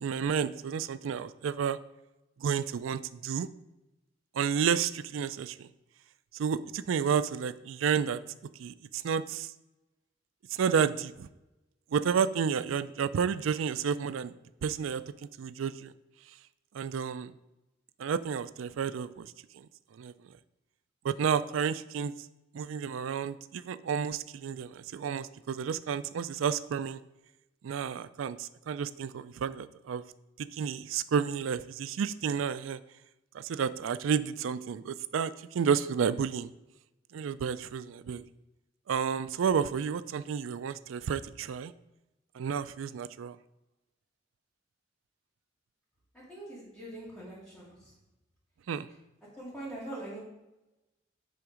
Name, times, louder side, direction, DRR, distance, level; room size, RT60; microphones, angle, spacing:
voice 1, 0.0-1.8 2.4-3.5 4.3-5.7 6.3-8.2 8.6-9.5 10.5-11.3 11.9-14.3 14.6-15.0 15.4-15.9 16.7-17.3 18.0-19.7 19.9-20.1 21.0-22.1 22.5-27.0 27.6-30.0 30.4-32.8 33.3-36.5 37.1-38.2 38.9-41.7 42.3-43.4 48.7-48.9, right 7 dB, 90° right, 15 dB, 0.4 m, -31 dB
voice 2, 46.1-47.7 49.4-50.2, right 1 dB, 5° left, -9 dB, 2.0 m, -42 dB
9.7 x 3.6 x 5.0 m, 0.95 s
head